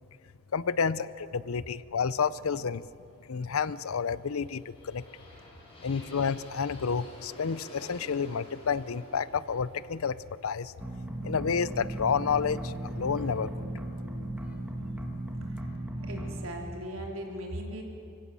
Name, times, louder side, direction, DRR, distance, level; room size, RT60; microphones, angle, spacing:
voice 1, 0.5-2.8 3.3-5.0 5.8-10.2 10.4-10.7 11.2-13.5, left 6 dB, 85° left, 18 dB, 0.6 m, -30 dB
sound 1, 4.1-12.0, equal, 25° left, 4.6 m, -51 dB
sound 2, 10.8-16.5, right 1 dB, 5° right, 1.8 m, -36 dB
voice 2, 16.0-17.8, equal, 70° right, 1 dB, 3.3 m, -38 dB
24.5 x 16.5 x 7.5 m, 2.5 s
head